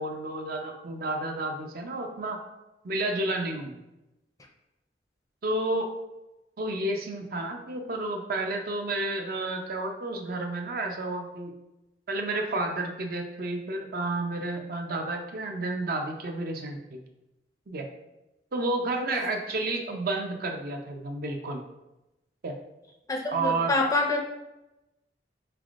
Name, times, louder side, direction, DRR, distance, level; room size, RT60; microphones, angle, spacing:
voice 1, 0.0-2.4 2.8-3.8 5.4-5.9 6.6-11.5 12.1-17.0 17.7-17.9 18.5-21.6 22.4-22.5 23.3-23.7, right 2 dB, 55° right, 3 dB, 0.5 m, -31 dB
voice 2, 23.1-24.2, left 2 dB, 20° left, 2 dB, 0.4 m, -26 dB
4.1 x 3.4 x 2.4 m, 0.96 s
head